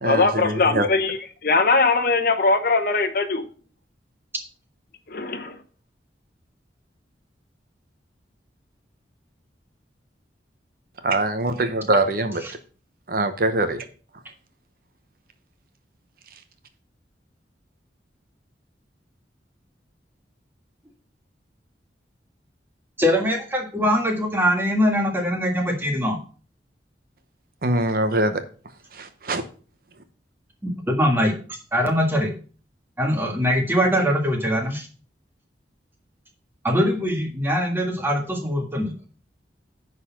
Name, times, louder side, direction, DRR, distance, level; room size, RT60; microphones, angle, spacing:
voice 1, 0.0-3.5 5.1-5.6, left 3 dB, 55° left, 1.0 m, -21 dB
voice 2, 11.0-12.4 13.1-13.8 27.6-28.4 29.3-29.4, right 2 dB, 55° right, 0.9 m, -22 dB
voice 3, 23.0-26.2 30.6-31.3 31.7-32.3 33.0-34.9 36.6-39.0, equal, 10° right, 1.6 m, -22 dB
9.9 x 4.1 x 5.8 m
head